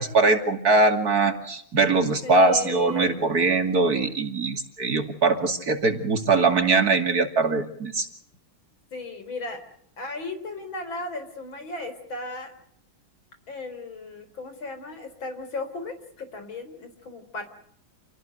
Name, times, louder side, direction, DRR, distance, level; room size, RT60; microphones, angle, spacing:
voice 1, 0.0-8.1, right 3 dB, 45° right, 6 dB, 2.9 m, -22 dB
voice 2, 2.2-3.2 8.9-9.6 10.0-12.5 13.5-17.5, left 3 dB, 70° left, 9 dB, 5.0 m, -36 dB
28.5 x 18.5 x 7.9 m, 0.68 s
omnidirectional pair, 2.2 m